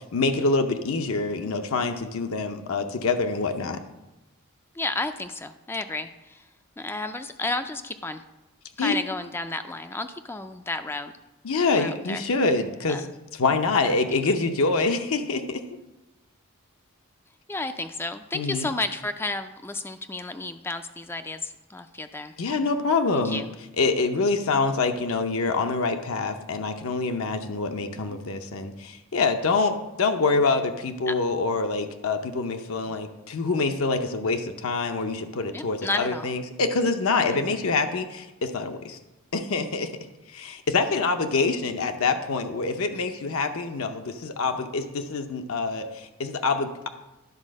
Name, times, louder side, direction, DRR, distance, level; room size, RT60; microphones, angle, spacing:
voice 1, 0.1-3.8 8.8-9.0 11.4-13.0 13.3-15.6 18.3-18.7 22.4-23.4 23.8-39.0 39.3-39.9 40.3-46.9, left 3 dB, 65° left, 6 dB, 0.6 m, -26 dB
voice 2, 4.7-6.4 6.8-8.2 8.8-11.1 11.7-12.2 12.9-13.1 13.8-14.0 17.5-22.3 23.2-23.5 28.1-28.2 31.1-31.2 35.5-36.3 37.3-37.4, left 2 dB, 10° left, 9 dB, 0.3 m, -32 dB
10.5 x 4.1 x 6.3 m, 1.0 s
head